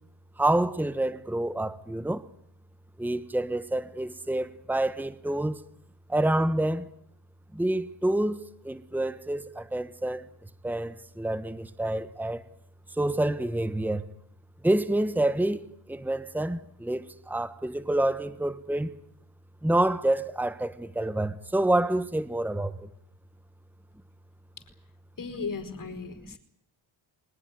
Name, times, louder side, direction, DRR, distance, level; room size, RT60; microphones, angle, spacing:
voice 1, 0.4-2.2 3.0-5.6 6.1-6.9 7.5-10.3 10.6-12.4 12.9-14.0 14.6-18.9 19.6-22.9, right 1 dB, 5° right, 1.4 m, -28 dB
voice 2, 25.2-26.4, left 4 dB, 40° left, 4.9 m, -36 dB
24.0 x 20.5 x 9.5 m
cardioid pair, 85°, 48 cm